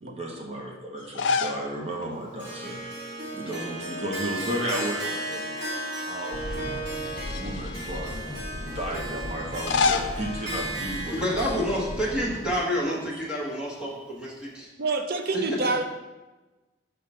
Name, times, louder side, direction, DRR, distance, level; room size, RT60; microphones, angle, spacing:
voice 1, 0.0-5.5 6.1-6.9 7.3-8.2 8.6-12.2 12.9-13.0, right 1 dB, 35° right, 0 dB, 1.0 m, -34 dB
sound 1, 1.0-1.7 2.0-2.1 3.5-4.0 4.3-5.4 6.0-6.1 7.0-8.1 9.4-11.6, left 5 dB, 85° left, 0.4 m, -30 dB
Harp, 2.4-13.6, right 1 dB, 85° right, 1.7 m, -35 dB
sound 2, 6.3-12.6, left 1 dB, 20° left, 0.4 m, -38 dB
voice 2, 11.1-14.7 15.3-15.6, equal, 5° right, -5 dB, 1.3 m, -28 dB
voice 3, 14.8-15.8, right 3 dB, 55° right, 6 dB, 0.6 m, -27 dB
5.5 x 3.7 x 5.5 m, 1.2 s
head